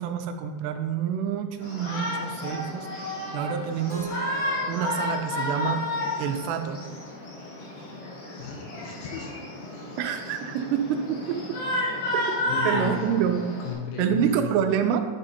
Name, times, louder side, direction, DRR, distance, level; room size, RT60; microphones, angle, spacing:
voice 1, 0.0-4.1 4.7-5.9 6.2-6.8 10.0-11.6 12.6-13.4 14.0-15.0, right 8 dB, 85° right, 7 dB, 2.7 m, -27 dB
Shout, 1.6-13.7, left 1 dB, 55° left, 2.9 m, -32 dB
Keyboard (musical), 3.9-7.8, right 1 dB, 35° left, 0.6 m, -45 dB
voice 2, 8.4-9.3 10.3-10.4 12.5-13.1 13.6-14.7, left 5 dB, 75° left, 1 dB, 2.6 m, -34 dB
9.0 x 6.6 x 2.8 m, 1.5 s
omnidirectional pair, 4.8 m